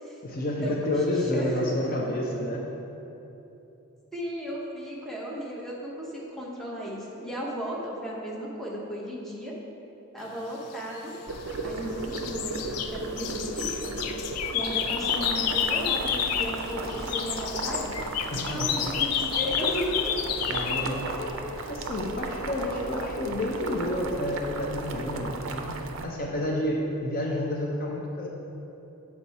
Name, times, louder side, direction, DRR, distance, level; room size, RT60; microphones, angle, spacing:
voice 1, 0.2-2.7 18.3-18.9 20.5-21.4 21.7-28.3, left 1 dB, 40° left, -1 dB, 0.6 m, -30 dB
voice 2, 1.1-1.7 4.1-9.5 10.1-11.1 11.6-14.1 14.5-18.0 18.5-20.1, equal, ahead, -5 dB, 0.9 m, -35 dB
sound 1, 11.0-11.8 12.1-16.6 16.9-20.9, left 9 dB, 85° left, 0.4 m, -30 dB
Boiling, 11.3-26.0, right 3 dB, 60° right, 0.5 m, -35 dB
7.5 x 4.4 x 4.2 m, 2.9 s
head